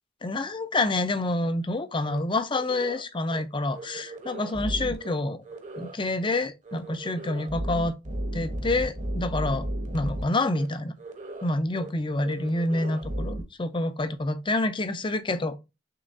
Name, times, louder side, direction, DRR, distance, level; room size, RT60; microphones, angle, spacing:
voice 1, 0.2-5.4 5.8-7.9 8.3-9.7 9.9-10.9 11.4-15.6, left 2 dB, 25° left, 0.6 m, -27 dB
sound 1, 2.0-2.2 2.5-3.0 3.3-3.4 3.7-5.1 5.4-6.0 6.2-6.4 6.6-10.2 10.5-10.7 11.0-11.5 11.8-11.9 12.2-13.4, right 1 dB, 45° right, 1.2 m, -34 dB
6.7 x 3.1 x 2.6 m
head